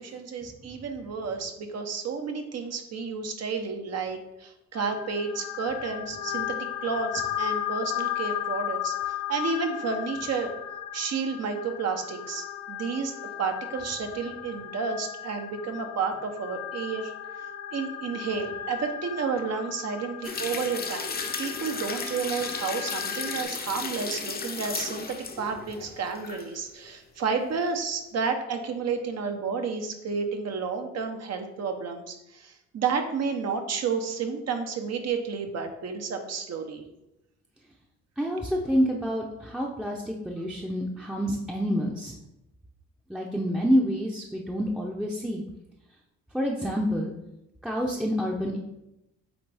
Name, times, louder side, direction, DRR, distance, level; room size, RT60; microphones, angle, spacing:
voice 1, 0.0-6.6 6.8-10.5 10.9-13.1 13.4-17.1 17.7-21.1 21.4-36.8, right 5 dB, 55° right, 5 dB, 0.9 m, -31 dB
sound 1, 4.7-23.4, left 11 dB, 60° left, 0.8 m, -36 dB
sound 2, 20.2-26.5 26.8-26.9, left 4 dB, 30° left, 0.7 m, -35 dB
voice 2, 38.2-42.1 43.1-45.4 46.3-47.1 47.6-48.6, equal, 5° right, -1 dB, 0.7 m, -27 dB
8.1 x 3.4 x 3.4 m, 0.90 s
cardioid pair, 90°, 30 cm